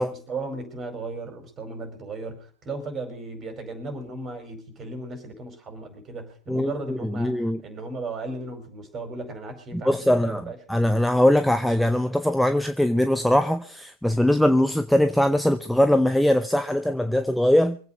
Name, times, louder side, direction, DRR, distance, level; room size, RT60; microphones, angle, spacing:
voice 1, 0.1-10.6, right 3 dB, 25° right, 4.8 m, -36 dB
voice 2, 6.5-7.6 9.7-10.4 10.7-17.8, left 1 dB, ahead, 0.7 m, -21 dB
24.5 x 8.5 x 5.2 m
figure-of-eight pair, 90°, 0 cm